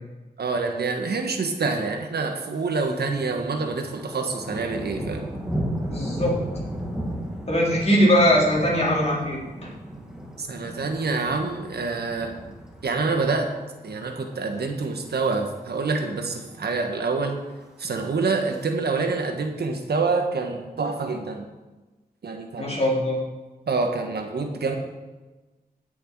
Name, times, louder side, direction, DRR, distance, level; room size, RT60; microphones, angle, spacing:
voice 1, 0.4-5.3 10.4-12.3 12.8-13.5 13.8-17.4 17.8-21.5 22.2-22.8 23.7-24.7, right 4 dB, 80° right, 4 dB, 1.4 m, -26 dB
Thunder, 2.5-3.1 3.4-13.7 14.1-14.4 14.9-15.3 15.6-15.7 15.9-16.0 16.3-16.9 17.7-18.6, equal, 5° right, 1.8 m, -35 dB
voice 2, 5.8-6.4 7.5-9.4 22.6-23.2, equal, 40° left, -4 dB, 3.6 m, -20 dB
16.5 x 6.4 x 4.7 m, 1.2 s
wide cardioid pair, 100°, 16 cm